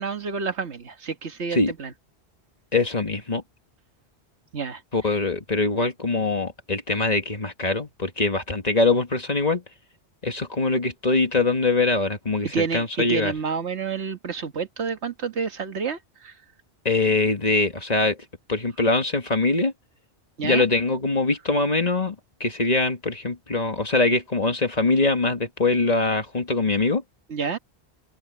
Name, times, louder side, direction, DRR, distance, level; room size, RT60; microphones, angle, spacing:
voice 1, 0.0-1.9 4.5-4.8 12.5-16.3 20.4-20.6 27.3-27.6, right 5 dB, 85° right, 1.7 m, -29 dB
voice 2, 2.7-3.4 4.9-9.6 10.2-13.3 16.9-18.2 18.5-19.7 20.4-27.0, left 3 dB, 40° left, 1.9 m, -23 dB
omnidirectional pair, 1.1 m